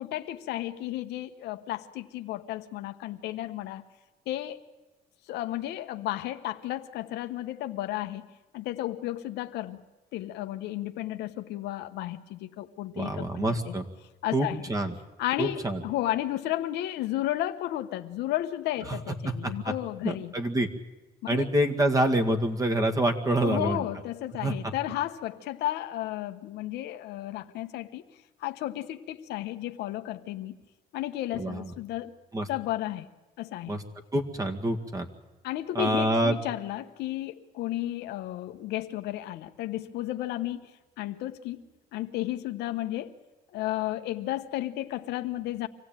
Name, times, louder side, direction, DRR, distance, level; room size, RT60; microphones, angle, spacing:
voice 1, 0.0-3.8 4.3-4.6 5.3-8.3 8.5-9.8 10.1-13.7 14.2-14.7 15.2-20.3 21.2-21.5 23.4-28.0 28.4-30.6 30.9-32.1 32.5-33.1 33.4-33.8 35.4-40.7 41.0-43.1 43.5-45.7, left 14 dB, 85° left, 8 dB, 1.1 m, -33 dB
voice 2, 13.0-13.9 14.3-14.9 15.4-15.8 18.9-19.0 19.2-19.7 20.0-20.7 21.3-23.8 24.4-24.7 31.4-31.7 32.3-32.5 33.7-33.8 34.1-35.1 35.7-36.3, right 1 dB, 20° right, 5 dB, 2.0 m, -26 dB
25.5 x 16.0 x 9.1 m, 1.1 s
cardioid pair, 110°, 17 cm